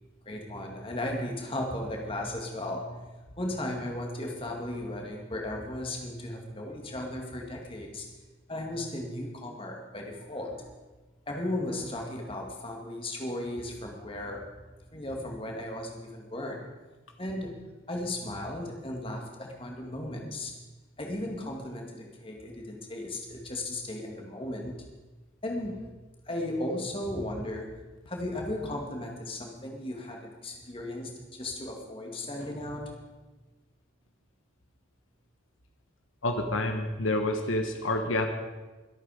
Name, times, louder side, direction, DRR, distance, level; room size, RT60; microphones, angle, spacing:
voice 1, 0.3-3.1 3.4-8.1 8.5-10.7 11.3-14.4 14.9-16.6 17.2-17.6 17.9-20.6 21.0-24.8 25.4-25.9 26.3-27.7 28.1-32.9, left 1 dB, 25° left, 1 dB, 2.2 m, -36 dB
voice 2, 36.2-38.3, left 2 dB, 75° left, 5 dB, 1.3 m, -28 dB
22.5 x 8.6 x 5.1 m, 1.2 s
head